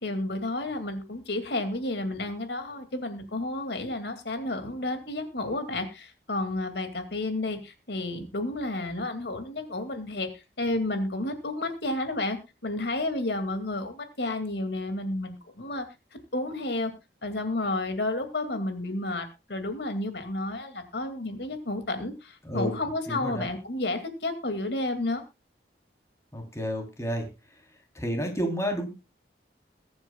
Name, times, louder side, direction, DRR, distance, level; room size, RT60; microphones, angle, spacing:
voice 1, 0.0-10.3 10.6-12.4 12.6-15.8 16.3-16.9 17.2-25.2, left 2 dB, 75° left, 7 dB, 2.4 m, -31 dB
voice 2, 22.4-23.5 26.3-27.3 28.0-28.9, equal, 15° left, 3 dB, 3.5 m, -31 dB
22.5 x 9.6 x 2.4 m, 0.27 s
head